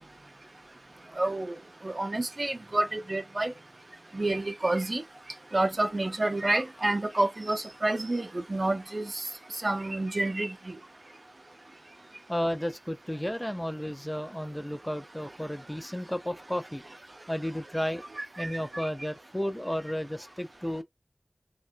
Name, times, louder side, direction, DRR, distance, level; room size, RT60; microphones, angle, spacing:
voice 1, 1.2-1.6 1.8-3.5 4.1-5.0 5.5-9.2 9.6-10.5 18.2-18.5, right 2 dB, 50° right, 0.4 m, -29 dB
voice 2, 12.3-16.8 17.3-18.0 18.4-20.8, equal, 10° left, 0.4 m, -33 dB
2.9 x 2.2 x 2.5 m
wide cardioid pair, 55°, 0 cm